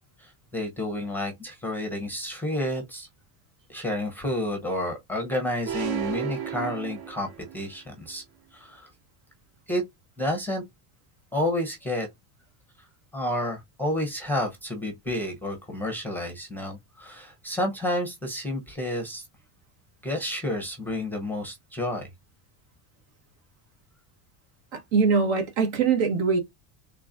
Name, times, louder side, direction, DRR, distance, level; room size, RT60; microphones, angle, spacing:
voice 1, 0.2-3.1 3.7-8.2 8.5-8.9 9.7-9.8 10.2-10.6 11.3-12.1 13.1-19.3 20.0-22.1, left 1 dB, 5° left, 0.6 m, -30 dB
sound 1, 5.7-7.7, right 11 dB, 55° right, 0.9 m, -32 dB
voice 2, 24.7-26.4, right 5 dB, 70° right, 1.5 m, -22 dB
3.8 x 3.3 x 2.5 m
cardioid pair, 155°, 46 cm